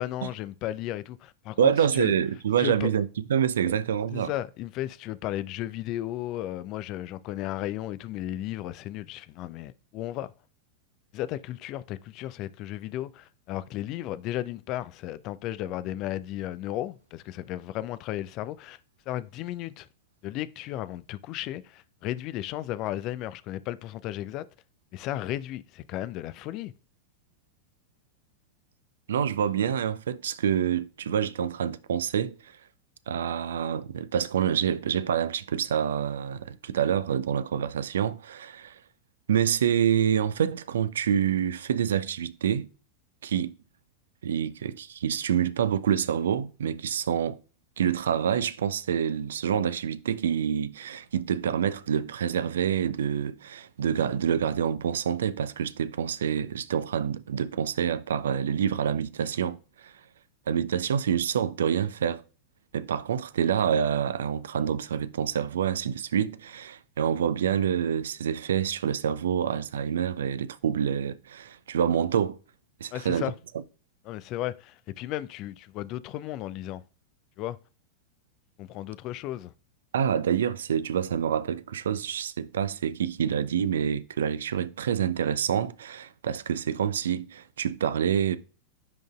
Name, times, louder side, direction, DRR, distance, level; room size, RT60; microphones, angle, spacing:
voice 1, 0.0-2.1 2.6-2.9 4.1-10.3 11.1-18.8 19.1-19.9 20.2-24.4 24.9-26.7 72.9-73.3 74.1-76.8 77.4-77.6 78.6-79.5, left 13 dB, 40° left, 0.4 m, -34 dB
voice 2, 1.6-4.3 29.1-32.4 33.1-38.7 39.3-42.7 43.2-43.5 44.2-47.4 47.8-59.6 59.8-59.9 60.5-62.2 62.7-72.4 72.8-73.3 79.9-88.4, right 8 dB, 65° right, 0.4 m, -27 dB
10.5 x 3.8 x 2.4 m
figure-of-eight pair, 90°, 0 cm